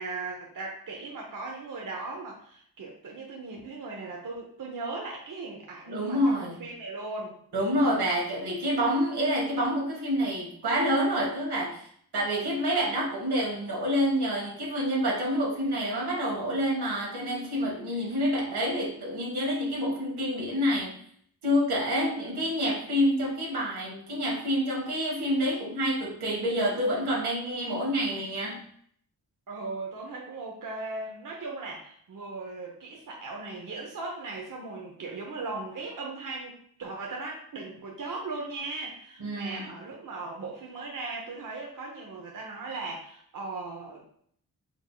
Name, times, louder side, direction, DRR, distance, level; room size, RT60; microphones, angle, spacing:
voice 1, 0.0-7.4 22.0-22.5 29.5-44.1, right 3 dB, 55° right, -1 dB, 0.9 m, -38 dB
voice 2, 5.9-6.6 7.5-11.9 12.1-20.9 21.4-28.6 39.2-39.6, equal, 85° right, -3 dB, 1.4 m, -27 dB
4.6 x 3.7 x 2.3 m, 0.63 s
cardioid pair, 60°, 38 cm